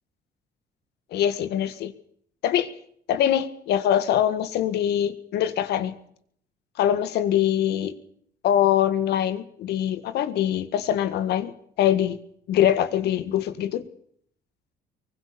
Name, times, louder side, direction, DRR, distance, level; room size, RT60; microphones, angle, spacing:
voice 1, 1.1-1.9 2.4-2.7 3.1-5.9 6.8-8.0 8.4-11.5 11.8-12.2 12.5-13.8, left 10 dB, 75° left, 12 dB, 1.9 m, -23 dB
23.5 x 20.5 x 7.0 m, 0.66 s
cardioid pair, 110°, 17 cm